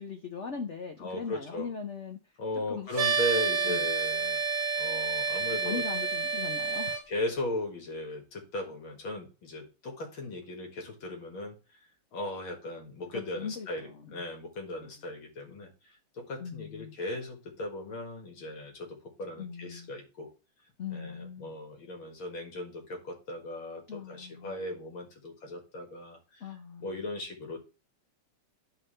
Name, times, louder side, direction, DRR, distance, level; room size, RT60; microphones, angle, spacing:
voice 1, 0.0-2.2 2.7-2.9 3.6-3.9 5.6-7.0 13.1-14.2 14.8-14.9 16.4-17.0 19.4-19.9 20.8-21.6 23.9-24.6 26.4-27.0, left 6 dB, 85° left, 0.6 m, -40 dB
voice 2, 1.0-1.7 2.4-4.4 4.8-5.8 7.1-11.6 12.1-20.3 20.9-26.5 26.8-27.6, left 1 dB, 65° left, 2.5 m, -37 dB
sound 1, 2.9-7.0, right 5 dB, 45° right, 1.1 m, -29 dB
11.0 x 4.7 x 3.2 m
omnidirectional pair, 2.4 m